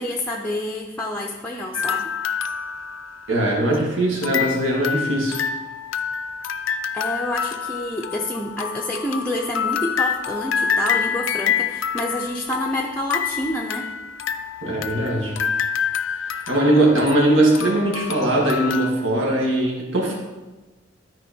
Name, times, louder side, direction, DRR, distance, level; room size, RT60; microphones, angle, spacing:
voice 1, 0.0-2.1 6.9-13.9, left 1 dB, 10° left, 0 dB, 0.6 m, -28 dB
sound 1, 1.7-3.8 4.2-18.9, left 7 dB, 75° left, 0.5 m, -27 dB
voice 2, 3.3-5.4 14.6-15.4 16.3-20.1, right 1 dB, 75° right, -2 dB, 2.1 m, -20 dB
12.5 x 4.6 x 4.4 m, 1.2 s
head